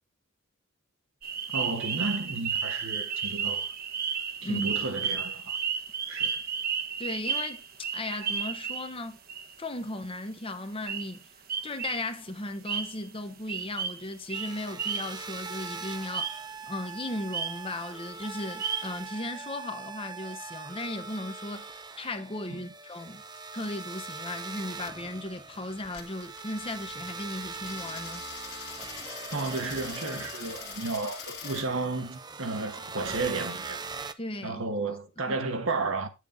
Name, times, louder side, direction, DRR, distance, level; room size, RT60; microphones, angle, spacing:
sound 1, 1.2-9.0 9.3-9.6 10.9-11.2 11.5-12.1 12.7-13.1 13.5-15.2 16.1-16.5 17.3-17.7 18.6-19.0, right 6 dB, 45° right, 1.1 m, -32 dB
voice 1, 1.5-3.7 4.4-5.6 6.1-6.4 22.5-22.6 29.3-33.8 34.4-36.1, right 3 dB, 70° right, 1.5 m, -33 dB
voice 2, 7.0-9.2 9.6-11.3 11.6-23.2 23.5-28.2 34.2-34.6 35.3-35.4, left 1 dB, 25° left, 1.0 m, -36 dB
sound 2, 14.3-34.1, right 4 dB, 20° right, 0.5 m, -41 dB
Coin (dropping), 25.8-31.7, left 8 dB, 50° left, 1.7 m, -44 dB
9.4 x 6.7 x 3.9 m
head